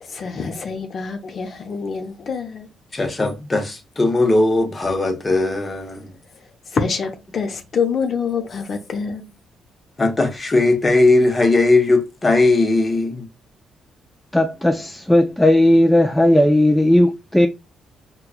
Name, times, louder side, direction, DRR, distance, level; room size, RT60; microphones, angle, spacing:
voice 1, 0.0-2.7 6.3-9.3, left 5 dB, 50° left, 0.6 m, -26 dB
voice 2, 2.9-6.1 10.0-13.3, left 2 dB, 25° left, 0.9 m, -18 dB
voice 3, 14.3-17.5, left 1 dB, 5° left, 0.3 m, -15 dB
4.6 x 2.3 x 2.4 m
cardioid pair, 90°, 0 cm